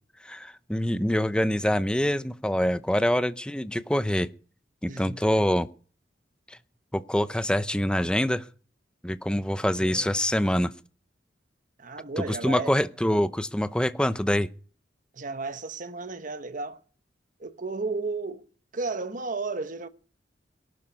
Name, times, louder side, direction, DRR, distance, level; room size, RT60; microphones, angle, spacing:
voice 1, 0.2-4.3 4.8-5.7 6.5-6.6 6.9-8.4 9.0-10.7 12.2-14.5, equal, 5° left, 0.7 m, -25 dB
voice 2, 4.9-5.2 9.8-10.1 11.8-12.8 15.1-16.8 17.4-18.5 18.7-19.9, right 3 dB, 50° right, 1.1 m, -33 dB
18.5 x 11.5 x 5.3 m
head